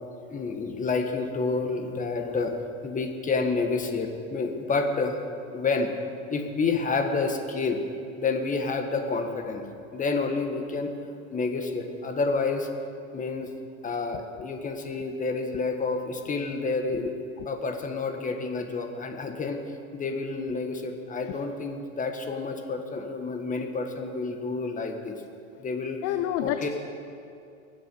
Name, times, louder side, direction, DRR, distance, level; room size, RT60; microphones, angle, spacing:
voice 1, 0.3-2.5 2.8-5.2 5.5-5.9 6.3-7.8 8.2-9.6 9.9-10.9 11.3-12.7 13.1-13.5 13.8-19.6 19.9-25.2 25.6-26.0 26.4-26.7, left 4 dB, 20° left, 5 dB, 1.4 m, -29 dB
voice 2, 26.0-26.7, left 11 dB, 35° left, 9 dB, 0.6 m, -28 dB
22.5 x 7.8 x 5.5 m, 2.5 s
hypercardioid pair, 120°, 42 cm